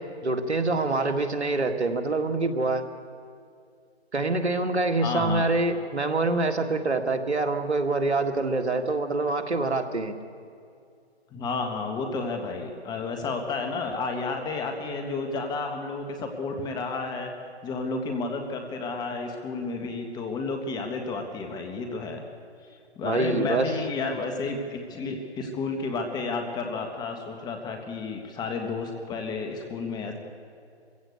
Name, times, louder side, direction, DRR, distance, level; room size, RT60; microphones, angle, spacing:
voice 1, 0.0-2.9 4.1-10.1 23.0-23.7, right 3 dB, 90° right, 6 dB, 2.1 m, -25 dB
voice 2, 5.0-5.5 11.3-17.3 17.6-22.2 22.7-30.1, left 3 dB, 10° left, 4 dB, 1.6 m, -31 dB
23.5 x 16.0 x 8.2 m, 2.4 s
hypercardioid pair, 145°, 32 cm